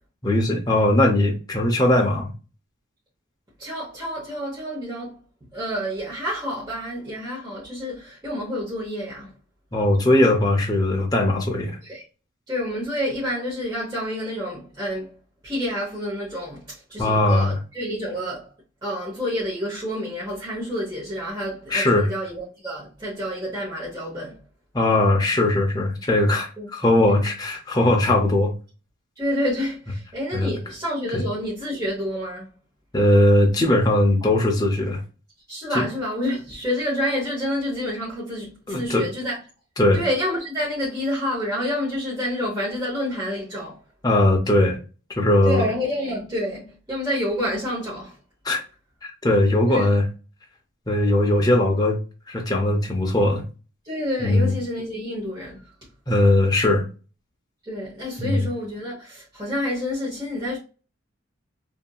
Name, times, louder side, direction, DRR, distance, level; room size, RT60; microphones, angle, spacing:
voice 1, 0.2-2.3 9.7-11.8 17.0-17.5 21.7-22.1 24.7-28.5 30.3-30.5 31.1-31.2 32.9-35.0 35.7-35.9 38.7-39.1 39.8-40.0 44.0-44.8 45.2-45.6 48.4-48.6 49.0-50.0 50.9-52.0 52.3-53.4 54.2-54.5 56.1-56.8 58.2-58.5, left 1 dB, 20° left, 0.5 m, -19 dB
voice 2, 3.6-5.2 5.5-9.3 11.8-12.0 12.5-15.2 15.4-18.5 18.8-24.4 26.6-26.7 27.0-27.2 29.2-32.5 35.5-39.4 39.9-43.8 45.4-48.2 49.6-49.9 53.8-55.7 57.6-60.6, equal, 20° right, 0.9 m, -28 dB
2.7 x 2.6 x 2.2 m
head